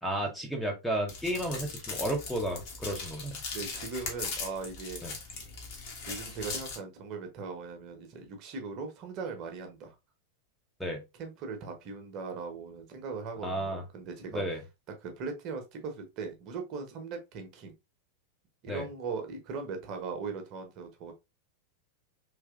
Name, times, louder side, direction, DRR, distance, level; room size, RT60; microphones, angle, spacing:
voice 1, 0.0-3.4 5.0-5.1 10.8-11.0 13.4-13.8 14.3-14.6 18.7-18.9, right 1 dB, ahead, 0.7 m, -32 dB
sound 1, 1.1-6.8, left 4 dB, 45° left, 1.2 m, -39 dB
voice 2, 3.5-5.0 6.1-9.9 11.2-14.4 15.0-17.7 18.6-21.1, right 4 dB, 40° right, 0.9 m, -39 dB
3.3 x 3.1 x 2.3 m
figure-of-eight pair, 90°, 0 cm